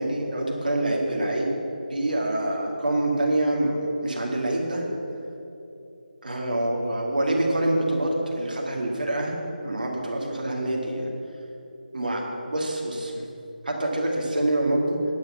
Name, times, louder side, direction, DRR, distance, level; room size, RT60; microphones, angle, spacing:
voice 1, 0.0-1.6 1.9-4.9 6.2-9.4 9.6-11.1 11.9-12.2 12.5-13.1 13.7-15.0, right 1 dB, 60° right, -1 dB, 2.0 m, -26 dB
10.0 x 6.1 x 7.1 m, 3.0 s
figure-of-eight pair, 155°, 5 cm